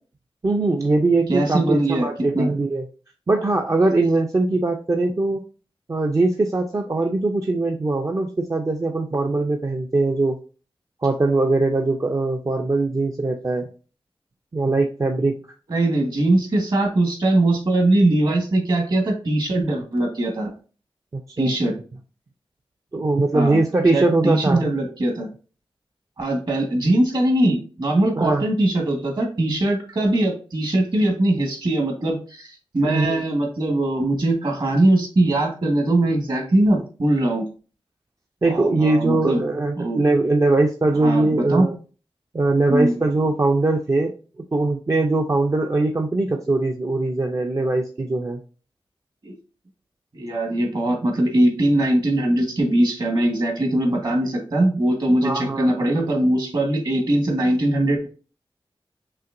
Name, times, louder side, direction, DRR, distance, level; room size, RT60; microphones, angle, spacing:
voice 1, 0.4-2.9 3.3-5.4 5.9-10.4 11.0-13.7 14.5-15.3 21.1-21.5 22.9-24.6 28.2-28.4 32.8-33.2 38.4-41.7 42.3-44.1 44.5-48.4 55.2-56.1, right 2 dB, 35° right, 2 dB, 0.5 m, -21 dB
voice 2, 1.3-2.1 2.3-2.5 15.7-20.5 21.4-21.8 23.3-23.6 23.9-25.3 26.2-37.5 38.4-39.4 39.8-40.0 41.0-41.7 42.7-42.9 49.2-49.3 50.1-58.1, right 1 dB, 50° right, 2 dB, 1.4 m, -21 dB
5.6 x 2.9 x 2.5 m, 0.36 s
wide cardioid pair, 110°, 10 cm